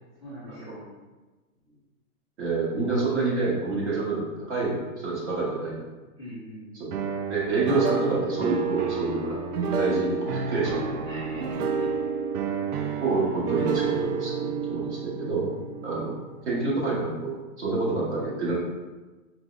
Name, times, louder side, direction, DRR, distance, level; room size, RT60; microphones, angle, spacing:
voice 1, 0.2-0.9 6.2-6.9 11.0-11.9 15.5-16.0, equal, 20° left, -14 dB, 0.4 m, -42 dB
voice 2, 2.4-4.2 4.5-5.9 6.8-7.0 7.3-9.4 9.8-11.0 13.0-15.5 15.8-18.6, right 3 dB, 50° right, -6 dB, 1.2 m, -28 dB
sound 1, 6.9-16.8, right 5 dB, 80° right, 0.5 m, -30 dB
4.6 x 2.0 x 2.4 m, 1.2 s
hypercardioid pair, 170°, 45 cm